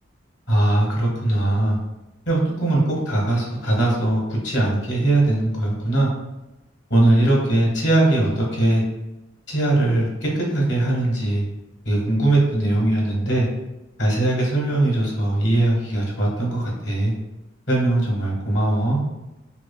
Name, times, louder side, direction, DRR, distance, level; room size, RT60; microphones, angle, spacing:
voice 1, 0.5-1.8 2.3-6.1 6.9-8.8 9.5-11.4 11.8-13.5 14.0-17.1 17.7-19.0, right 1 dB, 60° left, -3 dB, 1.2 m, -20 dB
5.9 x 2.1 x 2.2 m, 0.99 s
head